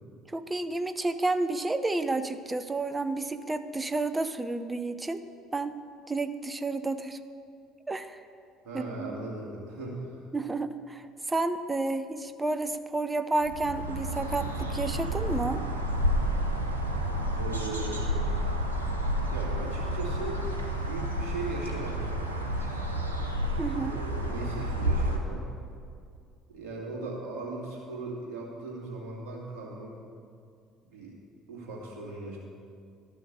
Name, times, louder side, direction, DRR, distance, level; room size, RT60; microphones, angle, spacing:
voice 1, 0.3-5.2 5.5-5.7 6.1-7.2 7.9-8.2 8.7-9.3 10.3-15.6 23.6-24.0, right 2 dB, 15° right, 10 dB, 0.6 m, -31 dB
voice 2, 8.6-10.1 17.4-18.0 19.2-22.2 22.4-22.7 23.7-25.5 26.5-29.9 30.8-31.2 31.5-32.4, right 2 dB, 55° right, -3 dB, 2.5 m, -38 dB
sound 1, 13.4-25.2, equal, 85° right, 0.8 m, -30 dB
12.0 x 6.4 x 6.7 m, 2.3 s
figure-of-eight pair, 55°, 0 cm